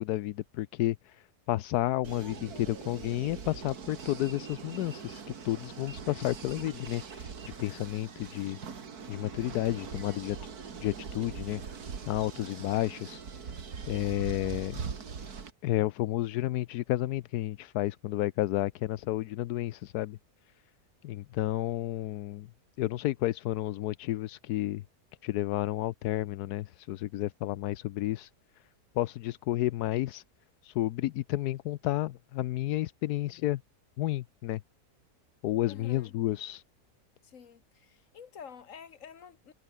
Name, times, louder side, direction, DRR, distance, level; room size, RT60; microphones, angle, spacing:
voice 1, 0.0-7.3 7.6-8.6 9.1-10.4 10.8-11.6 12.1-13.2 13.9-14.8 15.6-20.2 21.0-22.5 22.8-24.8 25.2-28.3 29.0-30.2 30.6-33.6 34.0-34.6 35.4-36.6, left 15 dB, 85° left, 1.1 m, -31 dB
sound 1, 2.0-15.5, right 6 dB, 75° right, 2.5 m, -42 dB
voice 2, 35.7-36.2 37.2-39.5, left 7 dB, 55° left, 1.9 m, -49 dB
omnidirectional pair, 1.6 m